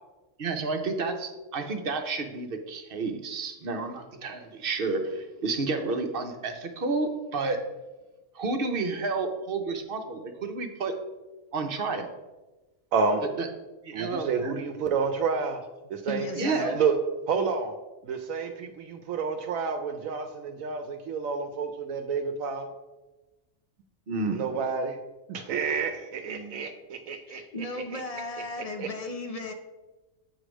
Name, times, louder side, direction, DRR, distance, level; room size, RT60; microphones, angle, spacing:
voice 1, 0.4-7.6 8.3-10.9 11.5-12.1 13.4-13.5 13.8-14.7 16.4-16.8 24.1-24.5 26.3-26.6, right 3 dB, 50° right, 5 dB, 0.9 m, -31 dB
voice 2, 12.9-13.2 13.9-15.6 15.9-17.0 17.3-17.7 18.0-22.7 24.3-25.0 25.3-28.0 28.6-28.9, right 5 dB, 80° right, 7 dB, 1.0 m, -30 dB
voice 3, 16.1-16.8 27.3-29.5, left 2 dB, 50° left, 5 dB, 0.4 m, -35 dB
8.3 x 3.3 x 6.2 m, 1.1 s
omnidirectional pair, 1.4 m